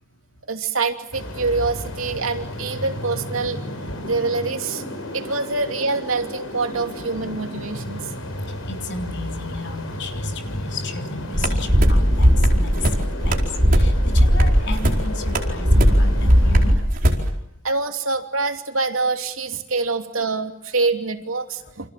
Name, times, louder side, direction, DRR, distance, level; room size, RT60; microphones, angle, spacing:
voice 1, 0.5-3.6 4.0-4.8 5.1-8.1 17.6-21.9, right 3 dB, 85° right, 5 dB, 2.9 m, -25 dB
sound 1, 1.1-16.7, left 1 dB, 80° left, 5.8 m, -33 dB
voice 2, 8.6-16.8, left 3 dB, 60° left, 4 dB, 3.6 m, -34 dB
sound 2, 11.3-17.3, equal, 45° right, 4.7 m, -17 dB
29.5 x 26.5 x 7.6 m, 0.75 s
head